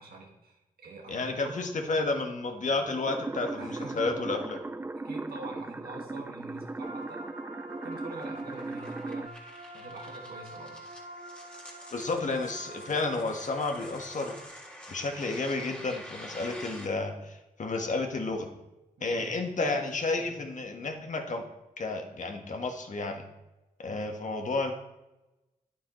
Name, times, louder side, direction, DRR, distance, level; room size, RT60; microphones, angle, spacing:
voice 1, 0.0-1.7 3.6-4.1 5.0-7.3 7.8-9.4 9.7-10.8 19.0-19.8 20.1-20.3, right 2 dB, 85° right, 0 dB, 1.8 m, -45 dB
voice 2, 1.1-4.6 11.9-14.3 14.9-18.5 19.0-21.4 21.8-23.2 23.8-24.7, left 3 dB, 55° left, 3 dB, 1.4 m, -31 dB
sound 1, 3.1-9.3, right 2 dB, 15° right, 0.4 m, -38 dB
sound 2, 6.2-16.9, equal, 5° left, 1.9 m, -48 dB
sound 3, 6.8-14.4, right 1 dB, 45° right, 1.2 m, -46 dB
9.4 x 8.3 x 3.1 m, 0.98 s
cardioid pair, 65°, 15 cm